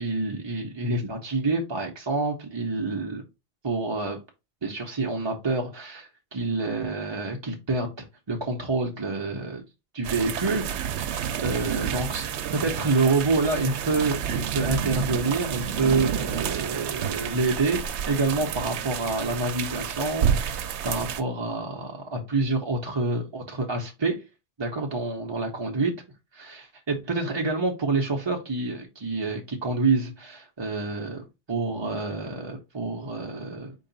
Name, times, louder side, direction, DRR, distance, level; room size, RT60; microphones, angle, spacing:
voice 1, 0.0-3.2 3.6-4.2 4.6-9.6 9.9-12.3 12.5-24.2 24.6-25.9 26.3-31.2 31.5-33.7, right 3 dB, 30° right, 1 dB, 0.5 m, -28 dB
sound 1, 10.0-21.2, right 8 dB, 90° right, 0.9 m, -29 dB
4.6 x 2.9 x 3.9 m, 0.25 s
omnidirectional pair, 1.1 m